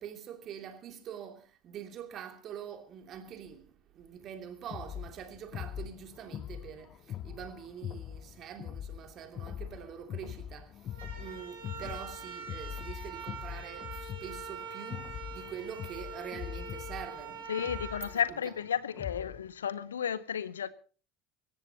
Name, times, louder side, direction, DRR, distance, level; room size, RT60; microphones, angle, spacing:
voice 1, 0.0-17.5 18.1-18.2, right 9 dB, 45° right, 2.8 m, -45 dB
sound 1, 4.7-19.5, left 10 dB, 45° left, 0.7 m, -43 dB
sound 2, 10.9-19.0, right 5 dB, 70° right, 5.5 m, -44 dB
voice 2, 17.5-20.7, left 8 dB, 75° left, 0.8 m, -33 dB
25.0 x 14.5 x 2.9 m
figure-of-eight pair, 65°, 0 cm